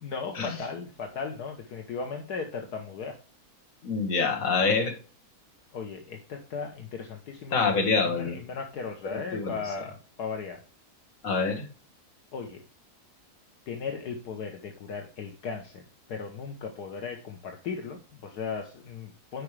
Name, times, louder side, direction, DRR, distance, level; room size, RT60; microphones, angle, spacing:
voice 1, 0.0-3.2 5.7-10.6 12.3-12.6 13.7-15.8 16.1-19.4, left 5 dB, 75° left, 3 dB, 1.6 m, -37 dB
voice 2, 3.8-4.9 7.5-8.4 9.1-9.5 11.2-11.6, left 4 dB, 55° left, 2 dB, 2.1 m, -26 dB
9.8 x 5.1 x 3.2 m, 0.37 s
omnidirectional pair, 1.7 m